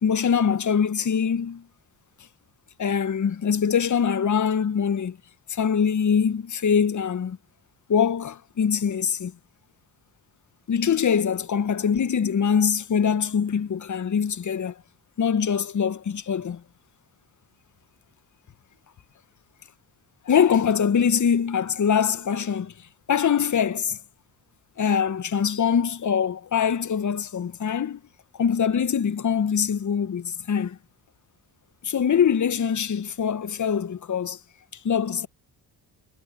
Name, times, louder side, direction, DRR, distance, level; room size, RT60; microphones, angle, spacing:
voice 1, 0.0-1.6 2.8-5.2 5.5-7.4 7.9-9.3 10.7-14.7 15.2-16.6 20.3-22.7 23.1-24.0 24.8-28.0 28.3-30.8 31.8-34.4 34.8-35.3, left 7 dB, 40° left, 1.3 m, -23 dB
hypercardioid pair, 55°, 46 cm